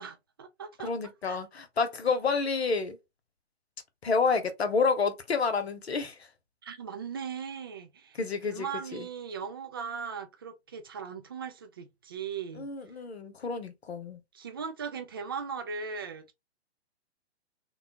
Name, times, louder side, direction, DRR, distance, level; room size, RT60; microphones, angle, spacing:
voice 1, 0.0-0.9 1.2-1.4 6.6-8.2 8.5-12.7 14.3-16.3, right 6 dB, 20° right, 0.4 m, -38 dB
voice 2, 0.8-3.0 4.0-6.3 8.1-8.7 8.9-9.1 12.5-14.2, left 4 dB, 65° left, 1.0 m, -29 dB
3.6 x 2.3 x 2.8 m
figure-of-eight pair, 125°, 34 cm